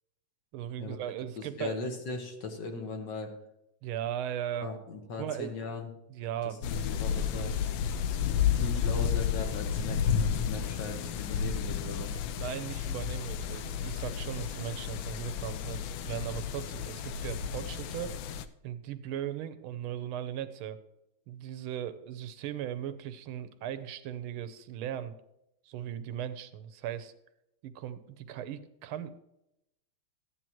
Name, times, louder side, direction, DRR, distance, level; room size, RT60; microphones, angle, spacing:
voice 1, 0.5-1.8 3.8-4.7 5.2-5.5 6.1-7.0 12.3-18.2 18.6-20.8 21.3-25.1 25.6-27.1 27.6-29.2, right 10 dB, 80° right, 12 dB, 1.6 m, -38 dB
voice 2, 1.4-3.4 4.6-5.9 6.4-7.5 8.0-12.2, left 3 dB, 60° left, 4 dB, 1.8 m, -39 dB
sound 1, 6.6-18.5, left 7 dB, 75° left, 1.3 m, -32 dB
14.0 x 9.9 x 3.0 m, 0.85 s
omnidirectional pair, 2.3 m